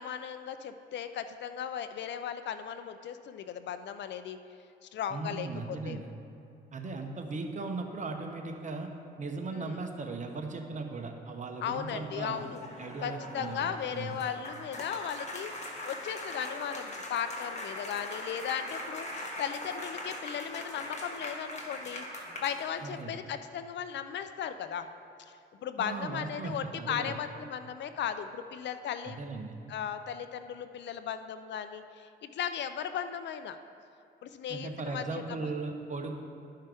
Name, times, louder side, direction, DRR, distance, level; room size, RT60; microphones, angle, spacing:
voice 1, 0.0-4.4 4.8-6.0 9.5-9.8 11.6-12.6 13.0-24.9 25.3-25.4 25.6-29.2 29.7-33.6 34.2-35.4, left 8 dB, 65° left, 10 dB, 0.5 m, -37 dB
voice 2, 5.1-6.1 6.7-8.9 9.2-12.4 12.8-14.2 22.8-23.2 25.8-27.1 29.0-29.6 34.5-36.1, right 3 dB, 40° right, 3 dB, 1.0 m, -38 dB
sound 1, 12.0-23.0, left 1 dB, 35° left, 1.4 m, -41 dB
12.5 x 5.6 x 3.5 m, 2.7 s
cardioid pair, 90°, 20 cm